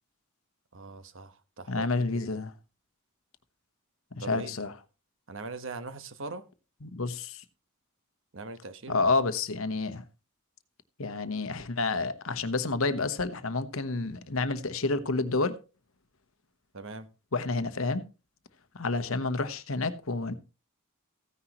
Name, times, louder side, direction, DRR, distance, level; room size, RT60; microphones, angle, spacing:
voice 1, 0.7-2.4 4.2-4.6 5.3-6.4 8.3-9.0 16.7-17.1, right 3 dB, 60° right, 1.2 m, -41 dB
voice 2, 1.7-2.5 4.1-4.7 6.8-7.4 8.9-10.0 11.0-15.6 17.3-18.0 18.7-20.3, left 3 dB, 70° left, 1.0 m, -29 dB
15.0 x 9.9 x 3.0 m
head